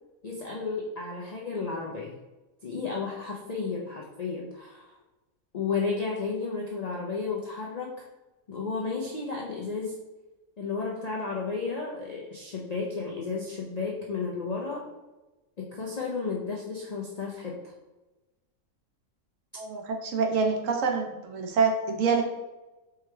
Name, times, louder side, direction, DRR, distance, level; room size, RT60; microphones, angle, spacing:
voice 1, 0.2-2.1 2.6-5.0 5.5-8.1 8.5-10.0 10.6-14.8 15.6-17.7, left 4 dB, 55° left, -3 dB, 0.4 m, -33 dB
voice 2, 19.6-22.2, right 5 dB, 70° right, 3 dB, 1.0 m, -26 dB
4.5 x 3.2 x 3.3 m, 1.1 s
omnidirectional pair, 1.4 m